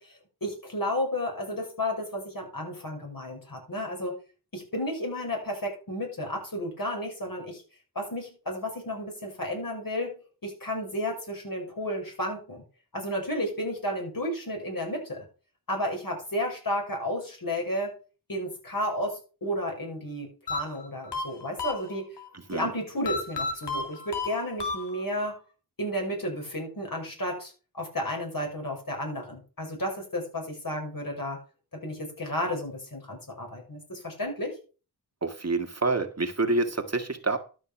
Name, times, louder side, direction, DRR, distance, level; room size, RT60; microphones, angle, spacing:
voice 1, 0.0-4.2 4.5-7.6 7.9-12.6 12.9-15.3 15.7-18.0 18.3-22.2 22.5-25.4 25.8-31.4 31.7-34.6, left 1 dB, 55° left, 6.2 m, -32 dB
sound 1, 20.5-22.3 23.0-25.3, left 4 dB, 85° left, 2.3 m, -33 dB
voice 2, 35.2-37.4, right 3 dB, 40° right, 1.9 m, -27 dB
12.5 x 5.9 x 5.9 m
wide cardioid pair, 55°, 40 cm